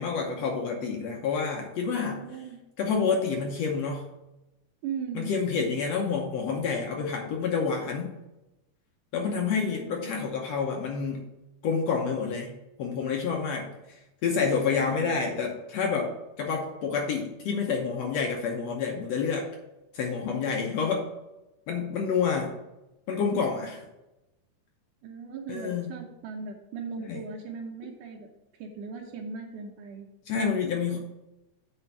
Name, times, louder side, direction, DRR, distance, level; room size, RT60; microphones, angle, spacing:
voice 1, 0.0-2.2 2.8-4.1 5.2-8.1 9.1-11.3 11.6-13.7 14.2-19.5 19.9-21.1 21.7-22.6 23.1-23.8 25.5-25.9 27.0-27.2 30.3-31.0, left 5 dB, 65° left, 1 dB, 1.8 m, -28 dB
voice 2, 2.1-2.6 4.8-5.3 9.5-10.1 14.7-15.2 23.3-23.5 25.0-28.3 28.6-30.1, right 5 dB, 80° right, -1 dB, 2.4 m, -38 dB
7.8 x 5.1 x 5.9 m, 0.96 s
omnidirectional pair, 3.7 m